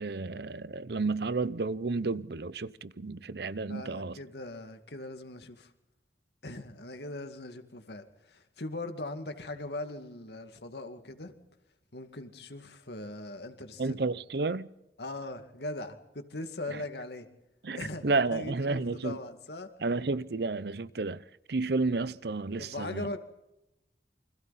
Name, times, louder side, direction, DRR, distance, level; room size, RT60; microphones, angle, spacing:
voice 1, 0.0-4.2 13.8-14.7 16.7-16.8 17.6-19.2 19.8-23.1, right 3 dB, 65° right, 0.7 m, -31 dB
voice 2, 3.7-5.7 6.4-11.3 11.9-14.0 15.0-17.3 17.8-19.7 22.6-23.2, left 2 dB, 70° left, 2.2 m, -40 dB
28.5 x 25.5 x 4.2 m
head